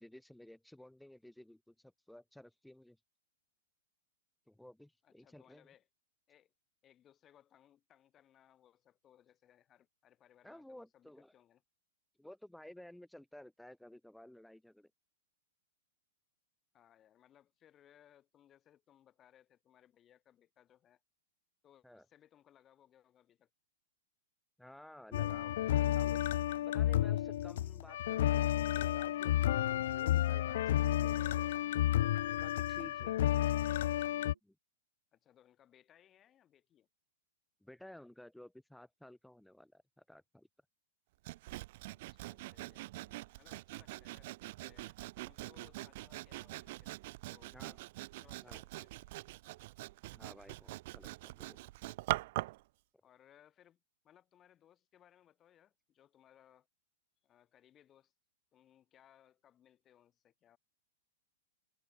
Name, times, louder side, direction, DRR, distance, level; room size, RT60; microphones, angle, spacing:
voice 1, 0.0-3.0 4.5-5.7 10.4-11.3 12.2-14.9 21.8-22.1 24.6-26.2 26.7-31.4 32.3-33.2 34.4-34.6 37.6-40.5 47.5-47.8 48.4-48.6 50.1-51.6, left 1 dB, ahead, 2.5 m, -55 dB
voice 2, 5.0-5.9 6.3-6.5 6.8-11.6 16.7-21.0 21.6-23.5 35.1-36.9 42.1-45.0 45.2-46.9 47.2-47.8 48.2-49.1 53.0-53.8 54.0-56.7 57.2-58.1 58.5-60.6, left 10 dB, 25° left, 7.2 m, -66 dB
sound 1, 25.1-34.3, left 12 dB, 60° left, 0.5 m, -31 dB
sound 2, 26.8-34.4, right 7 dB, 70° right, 5.7 m, -67 dB
Sawing, 41.2-52.6, right 19 dB, 50° right, 2.0 m, -43 dB
figure-of-eight pair, 105°, 0 cm